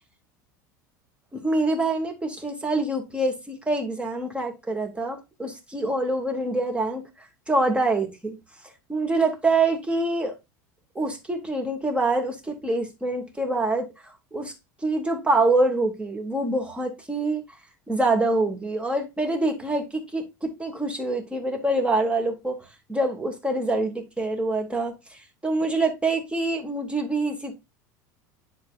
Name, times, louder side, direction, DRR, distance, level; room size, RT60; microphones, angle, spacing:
voice 1, 1.3-8.4 8.9-10.4 10.9-14.5 14.8-17.4 17.9-27.5, right 2 dB, 10° right, 2.6 m, -25 dB
10.5 x 4.5 x 2.6 m
hypercardioid pair, 80°, 10 cm